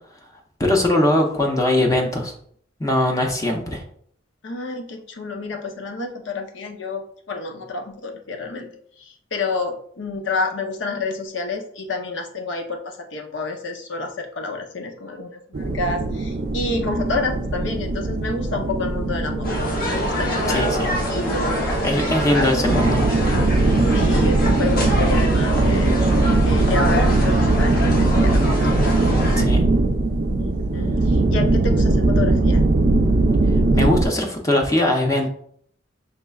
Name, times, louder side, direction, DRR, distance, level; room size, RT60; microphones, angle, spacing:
voice 1, 0.6-2.3 2.8-3.8 20.5-20.9 21.8-23.0 29.4-29.6 33.7-35.3, left 1 dB, 20° left, 1 dB, 0.6 m, -20 dB
voice 2, 4.4-8.7 9.0-19.6 19.8-22.6 23.5-28.5 30.4-32.6, left 3 dB, 80° left, 4 dB, 0.7 m, -29 dB
sound 1, 15.5-34.1, right 2 dB, 55° right, 0.4 m, -20 dB
sound 2, 19.4-29.4, left 1 dB, 50° left, 0.9 m, -26 dB
5.3 x 3.2 x 2.3 m, 0.63 s
head